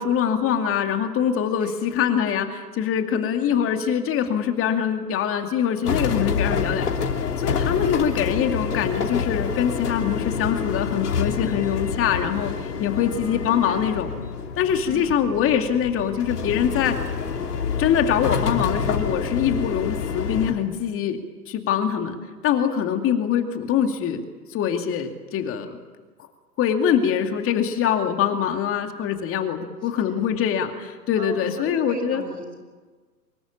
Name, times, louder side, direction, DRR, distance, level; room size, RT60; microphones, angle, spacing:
voice 1, 0.0-7.1 7.4-14.1 14.6-16.9 17.8-21.2 21.5-22.2 22.4-24.2 24.5-25.7 26.6-32.2, left 8 dB, 25° left, 6 dB, 2.4 m, -23 dB
sound 1, 5.8-20.5, left 6 dB, 70° left, 3.2 m, -27 dB
voice 2, 12.9-14.0 14.8-15.2 29.9-30.3 31.2-32.6, right 2 dB, 85° right, 4 dB, 6.8 m, -38 dB
25.0 x 22.0 x 8.6 m, 1.4 s
figure-of-eight pair, 105°, 48 cm